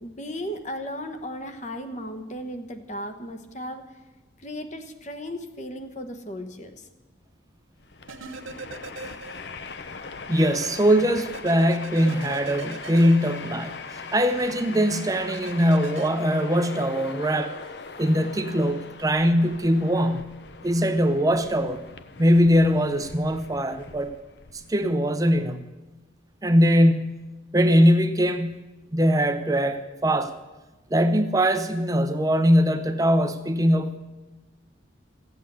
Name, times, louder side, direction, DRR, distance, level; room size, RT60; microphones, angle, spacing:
voice 1, 0.0-3.8 4.4-6.9, equal, 35° left, 7 dB, 1.1 m, -35 dB
Train, 7.8-25.4, left 4 dB, 60° left, 0.7 m, -40 dB
sound 1, 8.1-9.8 10.1-10.2 11.3-14.1 15.3-16.1, right 4 dB, 90° right, 0.8 m, -40 dB
voice 2, 10.3-17.5 18.0-20.3 20.6-21.8 22.2-24.1 24.5-25.6 26.4-27.2 27.5-28.7 28.9-30.3 30.9-34.0, equal, 20° right, 8 dB, 0.6 m, -21 dB
15.0 x 8.4 x 8.1 m, 1.1 s
head